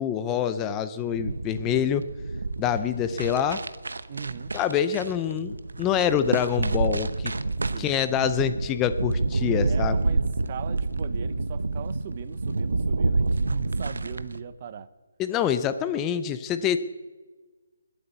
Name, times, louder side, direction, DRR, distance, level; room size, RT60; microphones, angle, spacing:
voice 1, 0.0-2.0 2.6-3.6 4.5-7.3 7.8-9.9 15.2-16.8, left 9 dB, 15° left, 11 dB, 0.5 m, -26 dB
sound 1, 1.0-14.4, right 3 dB, 85° right, 0.9 m, -28 dB
voice 2, 4.1-4.5 7.7-7.9 9.7-14.9, right 7 dB, 30° right, 14 dB, 0.8 m, -39 dB
21.0 x 8.3 x 8.1 m, 1.3 s
hypercardioid pair, 170°, 0 cm